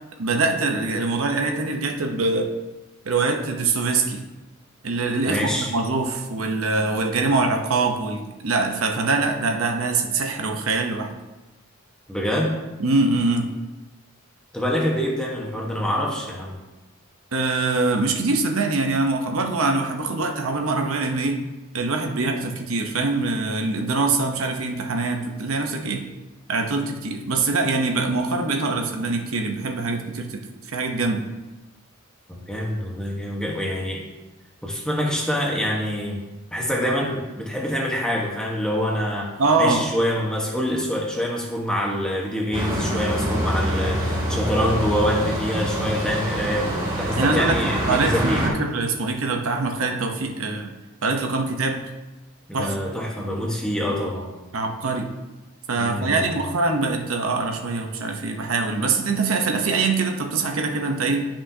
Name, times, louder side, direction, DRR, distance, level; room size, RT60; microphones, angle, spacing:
voice 1, 0.2-2.5 3.0-4.2 4.8-11.1 12.8-13.5 17.3-21.4 21.7-26.0 26.5-30.4 30.7-31.3 39.4-39.9 47.2-50.7 51.0-51.8 52.5-52.7 54.5-55.1 55.7-61.3, right 3 dB, 85° right, 3 dB, 0.9 m, -23 dB
voice 2, 5.2-5.7 12.1-12.5 14.5-16.6 32.3-34.0 34.6-36.2 36.5-39.3 39.6-46.7 47.0-48.5 52.5-54.3 55.8-56.4, equal, 5° left, -2 dB, 1.2 m, -25 dB
sound 1, 42.5-48.5, equal, 20° right, 1.7 m, -25 dB
10.0 x 5.8 x 2.8 m, 1.1 s
head